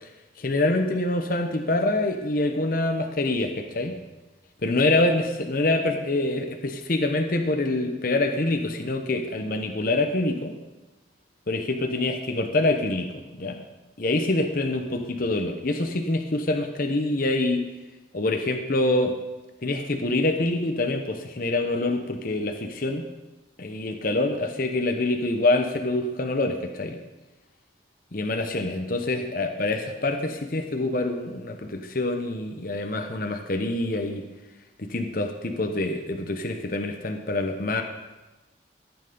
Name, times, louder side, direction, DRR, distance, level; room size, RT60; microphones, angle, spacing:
voice 1, 0.4-4.0 4.6-10.5 11.5-13.6 14.0-17.7 18.1-19.2 19.6-23.0 23.6-27.0 28.1-34.3 34.8-37.8, left 2 dB, 50° left, 4 dB, 0.9 m, -25 dB
14.5 x 9.1 x 5.4 m, 1.1 s
head